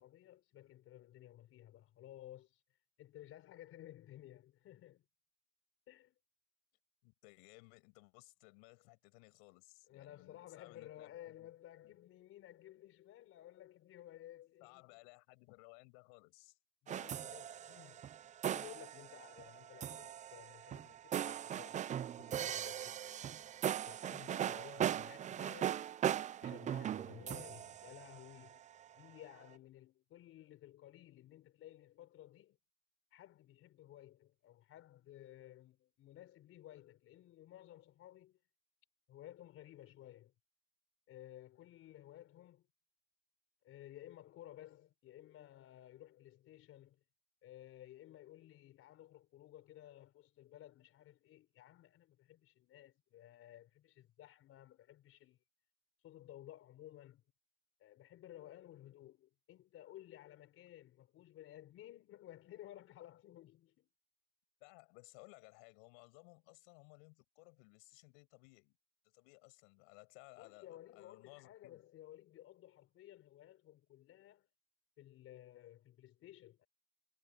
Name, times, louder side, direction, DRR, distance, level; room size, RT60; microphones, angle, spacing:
voice 1, 0.0-2.6 3.0-5.0 5.9-6.2 9.9-14.8 16.8-18.0 18.5-23.3 23.9-25.8 26.4-28.6 29.0-32.6 33.1-38.4 39.1-40.3 41.1-42.7 43.6-47.0 47.4-55.4 56.0-57.2 57.8-63.9 70.4-74.5 75.0-76.7, left 13 dB, 45° left, 4.4 m, -56 dB
voice 2, 7.0-11.1 11.4-11.5 11.8-11.9 14.6-16.6 64.6-68.8 69.1-71.8, left 37 dB, 70° left, 7.3 m, -60 dB
sound 1, 16.9-28.7, right 10 dB, 25° right, 0.5 m, -39 dB
supercardioid pair, 120°, 31 cm